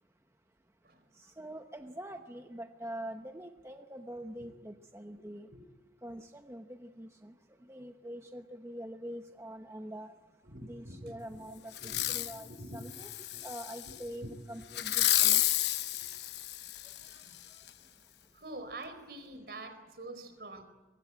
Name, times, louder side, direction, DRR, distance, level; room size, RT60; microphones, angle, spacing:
voice 1, 1.2-5.5 6.0-7.3 7.7-10.1 10.6-13.1 13.4-15.4 17.1-17.2, equal, 15° right, 5 dB, 0.9 m, -44 dB
voice 2, 10.4-11.4 11.8-12.9 13.3-13.4 13.9-14.0 14.2-14.3 15.2-15.3 18.3-20.6, right 1 dB, 60° right, 9 dB, 4.2 m, -46 dB
Fireworks, 11.7-12.4 12.9-13.9 14.7-17.1 17.7-17.8, left 13 dB, 70° left, 1.0 m, -30 dB
23.5 x 22.0 x 8.8 m, 1.2 s
head